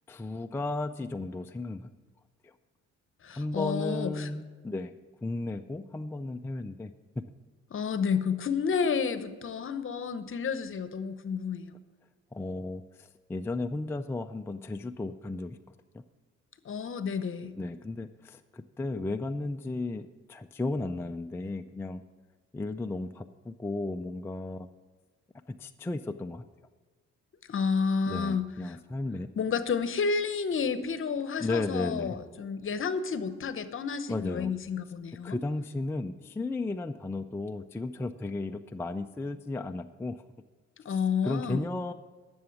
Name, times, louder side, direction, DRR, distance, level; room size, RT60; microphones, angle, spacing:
voice 1, 0.1-1.9 2.4-2.5 3.4-4.9 5.2-7.2 12.3-16.0 17.6-22.0 22.5-24.7 25.5-26.4 28.1-29.3 31.4-32.2 34.1-34.5 35.2-40.2 40.9-41.0 41.2-41.9, left 2 dB, 10° left, 6 dB, 0.3 m, -34 dB
voice 2, 3.2-4.3 7.7-11.7 16.6-17.6 27.5-28.8 29.4-35.4 40.8-41.7, left 5 dB, 45° left, 12 dB, 0.8 m, -30 dB
11.0 x 7.1 x 7.1 m, 1.4 s
cardioid pair, 90°, 30 cm